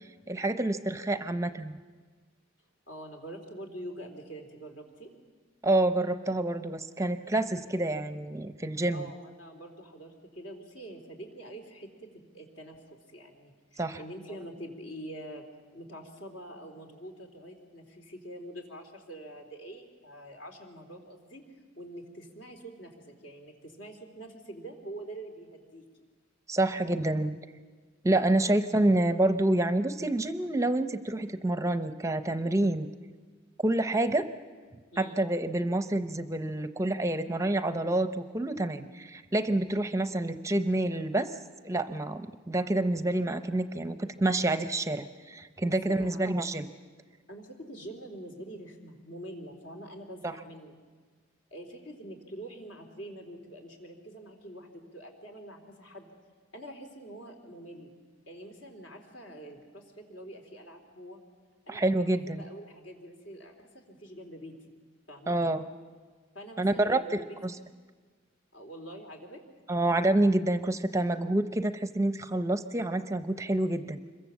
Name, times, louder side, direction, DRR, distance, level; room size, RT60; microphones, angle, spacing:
voice 1, 0.3-1.8 5.6-9.1 13.8-14.0 26.5-27.3 28.0-32.9 33.6-34.3 35.0-41.4 41.6-46.7 50.2-50.3 61.7-62.4 65.3-65.6 66.6-67.6 69.7-74.0, right 2 dB, 15° right, 9 dB, 0.6 m, -28 dB
voice 2, 2.9-5.1 8.9-15.4 15.7-21.4 21.8-25.8 28.2-28.5 34.9-35.2 45.6-46.2 47.3-50.8 51.5-56.1 56.5-57.9 58.3-61.2 61.7-64.7 65.1-65.4 66.3-67.6 68.5-69.4, right 1 dB, 65° left, 3 dB, 3.5 m, -45 dB
26.0 x 22.5 x 7.4 m, 1.5 s
head